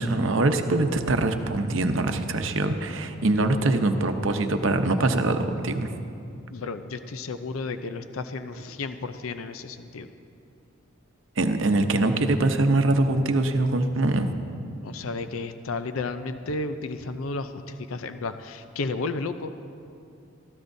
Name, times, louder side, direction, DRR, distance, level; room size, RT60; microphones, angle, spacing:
voice 1, 0.0-5.9 11.4-14.3, right 2 dB, 65° right, 7 dB, 0.8 m, -23 dB
voice 2, 6.5-10.1 14.8-19.6, left 3 dB, 80° left, 10 dB, 0.6 m, -33 dB
22.5 x 14.5 x 2.7 m, 2.6 s
head